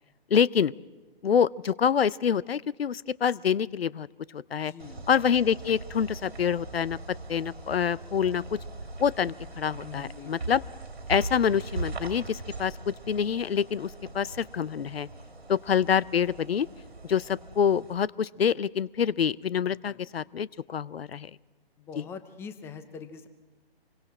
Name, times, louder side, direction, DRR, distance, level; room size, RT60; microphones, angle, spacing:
voice 1, 0.3-0.7 1.2-4.1 4.3-4.7 5.1-7.0 7.3-8.6 9.0-10.6 11.1-13.9 14.1-15.1 15.5-16.7 17.1-21.3 22.0-22.1, left 7 dB, 75° left, 22 dB, 0.6 m, -26 dB
voice 2, 4.5-5.0 9.8-10.6 19.8-20.0 21.8-23.3, left 6 dB, 10° left, 11 dB, 0.7 m, -43 dB
sound 1, 4.8-17.9, right 2 dB, 90° right, 2.6 m, -40 dB
26.0 x 23.0 x 4.4 m, 1.2 s
figure-of-eight pair, 140°, 31 cm